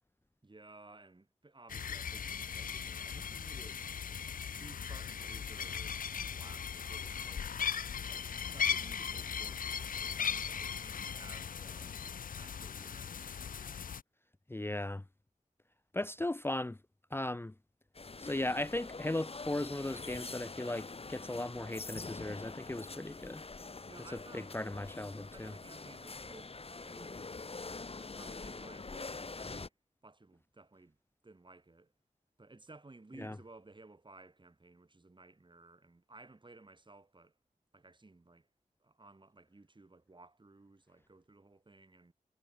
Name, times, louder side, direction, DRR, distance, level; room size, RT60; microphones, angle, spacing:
voice 1, 0.4-3.9 4.5-13.8 23.9-24.6 25.3-29.7 30.0-31.0 31.2-31.9 32.4-37.3 37.7-38.5 38.8-42.1, right 2 dB, 35° right, 2.9 m, -57 dB
sound 1, 1.7-14.0, left 7 dB, 90° left, 0.8 m, -38 dB
voice 2, 14.5-15.0 15.9-16.8 17.1-17.5 18.2-23.4 24.3-25.5 33.2-33.4, left 1 dB, 15° left, 0.8 m, -37 dB
sound 2, 17.9-29.7, left 3 dB, 45° left, 1.7 m, -45 dB
cardioid pair, 55°, 14 cm